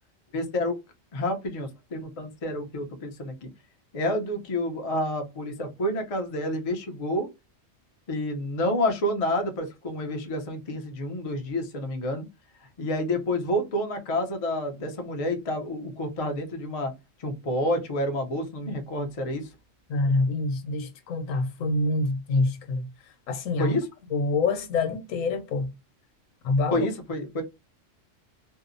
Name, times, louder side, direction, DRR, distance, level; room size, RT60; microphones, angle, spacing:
voice 1, 0.3-0.7 1.1-3.5 3.9-7.3 8.1-12.3 12.8-16.9 17.2-19.5 23.6-23.9 26.7-27.4, left 1 dB, 50° left, 0.4 m, -29 dB
voice 2, 19.9-22.9 23.3-23.8 24.1-25.7 26.4-26.9, left 3 dB, 85° left, 1.0 m, -26 dB
2.7 x 2.0 x 2.5 m
omnidirectional pair, 1.3 m